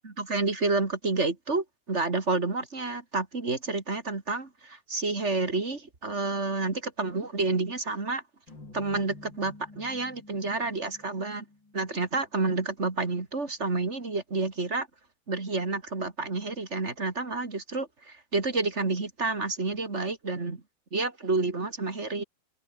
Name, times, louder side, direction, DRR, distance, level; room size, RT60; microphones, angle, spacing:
voice 1, 0.0-8.2 8.7-11.4 11.7-14.9 15.3-20.6 20.9-22.2, right 3 dB, 20° right, 2.3 m, -29 dB
sound 1, 8.5-12.8, left 2 dB, 30° left, 7.0 m, -50 dB
omnidirectional pair, 3.9 m